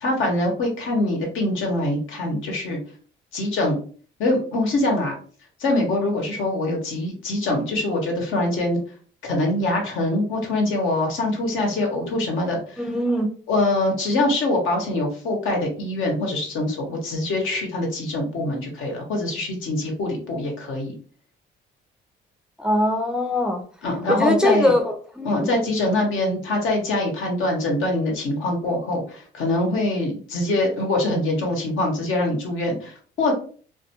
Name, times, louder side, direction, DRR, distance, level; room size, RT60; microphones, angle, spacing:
voice 1, 0.0-2.8 3.3-3.8 4.2-5.1 5.6-8.8 9.2-12.8 13.5-21.0 23.8-24.7 25.2-33.3, left 2 dB, 80° left, 1 dB, 0.9 m, -24 dB
voice 2, 12.8-13.3 22.6-23.6 24.1-25.5, left 1 dB, 5° right, 3 dB, 0.4 m, -22 dB
2.3 x 2.3 x 2.8 m, 0.43 s
cardioid pair, 90°, 20 cm